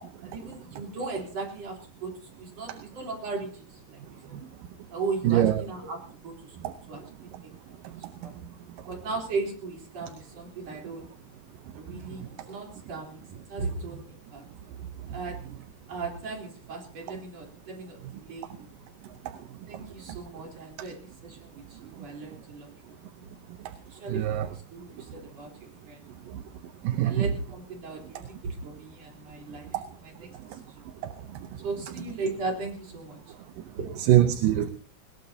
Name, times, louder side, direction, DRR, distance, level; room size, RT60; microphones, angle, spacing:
voice 1, 0.2-4.0 4.3-4.4 4.9-6.6 6.9-7.7 8.2-8.3 8.9-11.1 11.7-13.2 13.5-14.4 15.1-15.6 15.9-18.7 19.7-23.4 23.9-26.1 27.0-30.8 31.6-33.2 33.7-33.9, right 3 dB, 45° right, 1 dB, 4.8 m, -37 dB
voice 2, 24.1-24.5 26.8-27.2 34.1-34.7, right 12 dB, 75° right, 10 dB, 2.4 m, -22 dB
20.5 x 20.5 x 2.8 m, 0.39 s
omnidirectional pair, 4.1 m